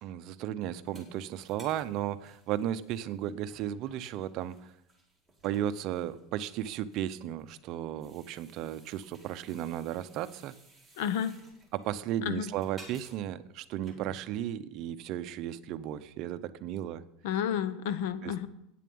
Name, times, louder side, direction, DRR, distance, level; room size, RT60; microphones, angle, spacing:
voice 1, 0.0-4.7 5.4-10.5 11.7-17.0 18.2-18.5, right 11 dB, 40° right, 12 dB, 0.6 m, -35 dB
sound 1, 0.9-14.3, right 1 dB, ahead, 2.1 m, -58 dB
voice 2, 11.0-11.3 12.2-12.5 17.2-18.5, left 9 dB, 65° left, 14 dB, 0.8 m, -31 dB
9.3 x 7.3 x 8.6 m, 0.82 s
supercardioid pair, 165°, 0 cm